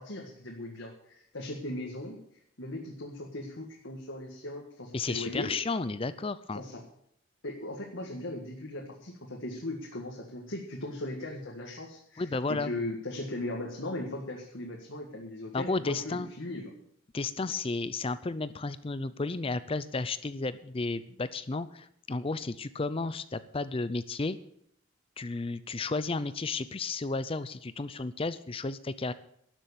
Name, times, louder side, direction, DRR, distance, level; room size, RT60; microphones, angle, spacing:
voice 1, 0.0-2.2 2.6-5.5 6.5-6.8 7.4-16.7, left 1 dB, 60° left, -1 dB, 1.9 m, -38 dB
voice 2, 4.9-6.6 12.2-12.7 15.5-16.3 17.1-24.4 25.2-29.1, left 3 dB, 25° left, 15 dB, 0.5 m, -33 dB
12.5 x 7.4 x 8.6 m, 0.70 s
head